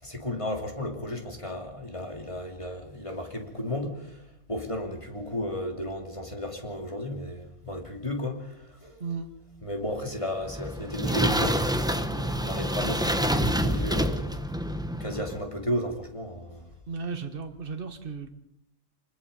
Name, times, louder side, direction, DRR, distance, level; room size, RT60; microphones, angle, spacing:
voice 1, 0.0-9.0 9.6-14.7 15.0-16.7, left 1 dB, 20° left, 3.1 m, -34 dB
sound 1, 10.4-15.4, equal, 5° right, 0.9 m, -27 dB
voice 2, 16.9-18.3, right 5 dB, 40° right, 1.8 m, -35 dB
27.0 x 20.0 x 5.5 m
omnidirectional pair, 1.4 m